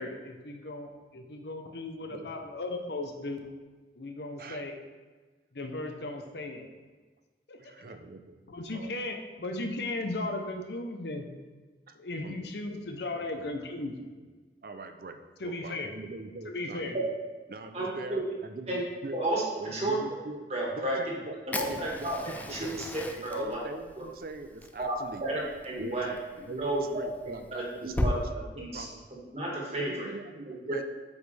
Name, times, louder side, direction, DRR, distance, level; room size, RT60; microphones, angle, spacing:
voice 1, 0.0-3.5 3.9-4.8 5.5-6.7 7.5-7.7 8.5-11.3 11.9-13.9 15.4-15.9 16.5-17.0, left 2 dB, 75° left, 4 dB, 0.8 m, -36 dB
voice 2, 7.6-8.4 8.7-8.9 11.9-12.0 12.2-12.4 12.7-12.8 13.4-13.5 14.6-17.1 17.5-19.2 19.6-20.4 20.7-22.8 23.2-25.5 25.8-28.2 28.5-29.1 29.8-30.8, right 3 dB, 55° right, 8 dB, 0.5 m, -43 dB
voice 3, 17.7-18.2 18.7-18.8 19.1-20.0 20.5-21.0 21.6-22.2 22.5-22.7 22.9-23.6 24.8-26.1 26.6-27.1 27.5-28.8 29.3-30.1 30.7-30.8, right 1 dB, 35° right, -4 dB, 1.8 m, -32 dB
Fire, 21.5-28.2, left 1 dB, 10° left, 0.3 m, -37 dB
8.0 x 5.2 x 3.4 m, 1.4 s
head